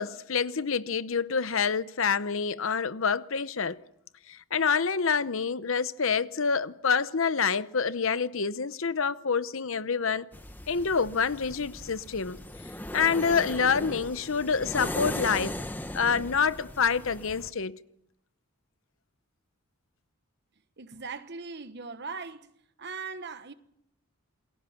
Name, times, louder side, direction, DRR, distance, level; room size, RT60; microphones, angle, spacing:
voice 1, 0.0-3.8 4.3-10.3 10.7-12.4 12.9-15.6 15.9-17.8, left 6 dB, 60° left, 0.8 m, -27 dB
sound 1, 10.3-17.5, left 1 dB, 10° left, 0.9 m, -38 dB
voice 2, 20.8-22.5 22.8-23.5, right 4 dB, 50° right, 1.2 m, -39 dB
28.0 x 21.0 x 5.8 m
head